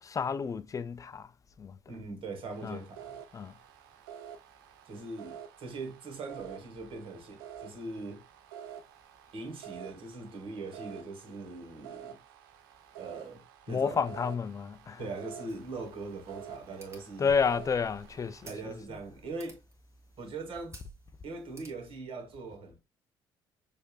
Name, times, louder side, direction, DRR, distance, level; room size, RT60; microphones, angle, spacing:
voice 1, 0.0-1.3 1.6-1.8 2.6-2.8 3.3-3.5 13.7-15.1 17.2-18.8, left 6 dB, 30° left, 0.4 m, -31 dB
voice 2, 1.9-3.2 4.9-8.2 9.3-12.2 13.0-14.0 15.0-17.3 18.4-19.6 20.2-20.8 21.2-22.8, right 3 dB, 50° right, 1.6 m, -41 dB
sound 1, 2.5-18.5, right 9 dB, 75° right, 0.5 m, -49 dB
sound 2, 15.5-22.0, right 2 dB, 25° right, 1.7 m, -55 dB
6.3 x 2.6 x 2.4 m
hypercardioid pair, 50°, 12 cm